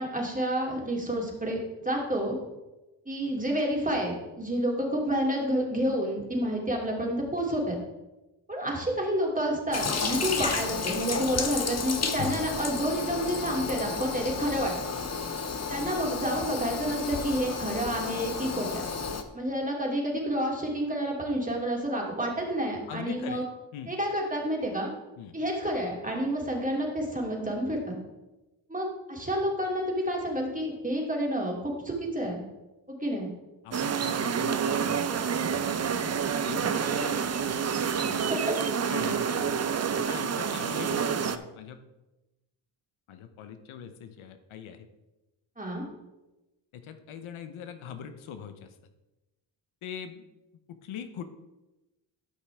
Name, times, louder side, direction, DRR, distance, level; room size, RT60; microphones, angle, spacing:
voice 1, 0.0-2.4 3.1-7.8 8.5-14.7 15.7-18.8 19.3-23.4 23.9-24.9 25.3-27.9 28.7-32.4 32.9-33.3 37.0-37.1 38.2-38.6 39.0-39.1 45.6-45.8, equal, 15° right, -1 dB, 2.8 m, -29 dB
Toilet flush, 9.7-19.2, left 5 dB, 35° left, 1.0 m, -32 dB
voice 2, 22.9-23.5 23.7-23.9 25.2-25.4 33.6-38.4 38.9-41.8 43.1-44.9 46.7-48.8 49.8-50.2 50.7-51.2, left 8 dB, 80° left, 9 dB, 0.8 m, -42 dB
sound 1, 33.7-41.4, right 7 dB, 35° right, 0.6 m, -28 dB
12.5 x 5.8 x 3.5 m, 1.0 s
cardioid pair, 60°, 48 cm